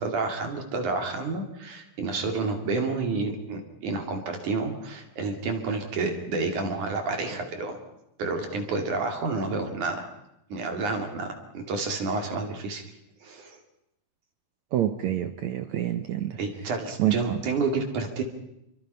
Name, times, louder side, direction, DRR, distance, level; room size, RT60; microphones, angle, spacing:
voice 1, 0.0-7.8 8.2-10.1 10.5-11.3 11.5-12.8 13.2-13.6 16.4-18.2, right 3 dB, 55° right, 4 dB, 3.9 m, -29 dB
voice 2, 14.7-16.4 17.0-17.4, right 11 dB, 75° right, 9 dB, 1.7 m, -27 dB
28.5 x 23.5 x 5.6 m, 0.84 s
omnidirectional pair, 4.5 m